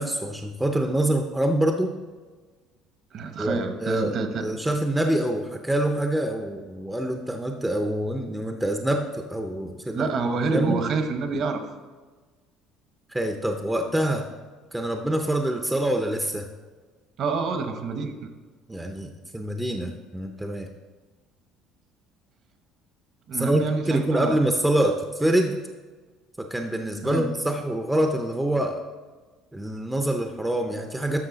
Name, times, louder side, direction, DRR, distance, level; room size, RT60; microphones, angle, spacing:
voice 1, 0.0-1.9 3.4-10.1 10.5-10.8 13.1-14.3 14.7-16.5 18.7-20.7 23.3-25.6 26.4-28.8 29.5-31.2, right 1 dB, 5° right, 4 dB, 0.5 m, -25 dB
voice 2, 3.1-4.5 9.9-11.6 17.2-18.3 23.3-24.4 27.0-27.3, right 4 dB, 45° right, 7 dB, 1.0 m, -27 dB
12.0 x 6.7 x 3.9 m, 1.3 s
cardioid pair, 160°, 0 cm